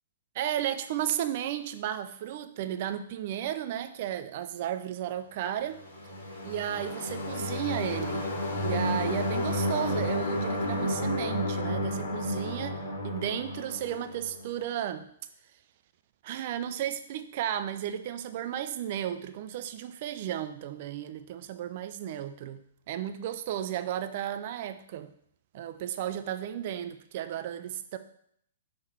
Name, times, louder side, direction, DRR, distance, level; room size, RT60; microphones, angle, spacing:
voice 1, 0.3-5.8 6.4-15.1 16.2-25.1 25.5-28.0, right 11 dB, 40° right, 10 dB, 0.4 m, -34 dB
sound 1, 5.7-14.4, left 1 dB, 45° left, 1.6 m, -31 dB
6.3 x 3.1 x 5.6 m, 0.67 s
figure-of-eight pair, 115°, 0 cm